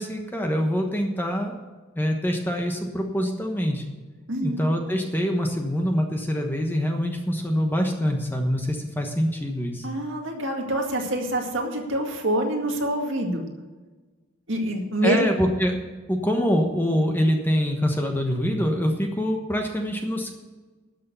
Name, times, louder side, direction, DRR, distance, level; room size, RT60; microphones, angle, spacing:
voice 1, 0.0-1.5 2.0-3.8 4.4-9.9 15.0-15.7 16.1-20.3, equal, 10° left, 3 dB, 1.2 m, -25 dB
voice 2, 4.3-4.6 9.8-13.4 14.5-15.3, right 1 dB, 60° right, 2 dB, 2.0 m, -26 dB
12.5 x 6.6 x 8.2 m, 1.3 s
head